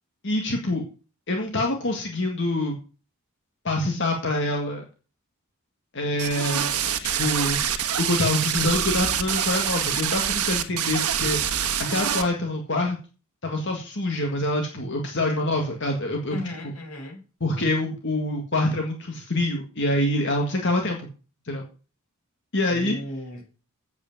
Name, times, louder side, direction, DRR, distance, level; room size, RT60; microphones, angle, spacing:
voice 1, 0.2-0.8 1.3-2.8 3.6-4.8 5.9-6.7 7.0-7.6 8.0-13.0 13.4-16.4 17.4-21.0 21.5-21.6 22.5-23.0, left 1 dB, 55° left, 1.9 m, -25 dB
sound 1, 6.2-12.2, right 9 dB, 90° right, 1.5 m, -25 dB
voice 2, 16.3-17.2 22.7-23.4, left 1 dB, 75° left, 5.3 m, -35 dB
8.3 x 8.2 x 7.3 m
head